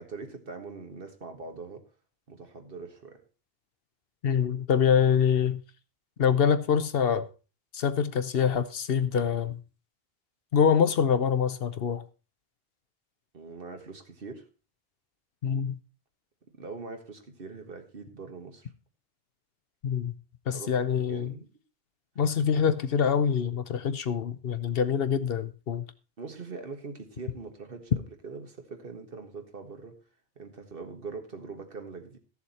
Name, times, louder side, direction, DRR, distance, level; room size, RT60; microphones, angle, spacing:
voice 1, 0.0-1.8 2.3-3.2 13.3-14.4 16.5-18.7 20.5-20.8 21.1-21.5 26.2-30.0 30.4-32.2, right 4 dB, 60° right, 1.7 m, -42 dB
voice 2, 4.2-5.6 6.2-7.3 7.7-9.6 10.5-12.0 15.4-15.8 19.8-20.1 20.5-21.3 22.2-25.8, left 7 dB, 70° left, 1.0 m, -25 dB
14.0 x 7.0 x 4.2 m
omnidirectional pair, 1.0 m